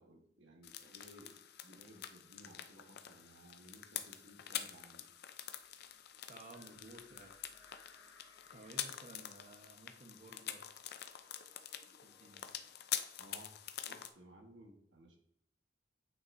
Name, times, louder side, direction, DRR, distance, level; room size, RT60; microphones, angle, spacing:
voice 1, 0.0-5.1 13.2-13.6 13.9-15.2, right 1 dB, 85° right, 2 dB, 1.4 m, -59 dB
sound 1, 0.6-14.1, left 10 dB, 60° left, 0.5 m, -46 dB
sound 2, 5.2-12.7, equal, 5° left, 1.6 m, -74 dB
voice 2, 6.3-7.4 8.5-10.7 12.0-12.5, right 2 dB, 40° right, 4 dB, 1.0 m, -55 dB
sound 3, 6.5-8.8, left 4 dB, 80° left, 0.8 m, -63 dB
9.3 x 6.0 x 2.6 m, 0.73 s
head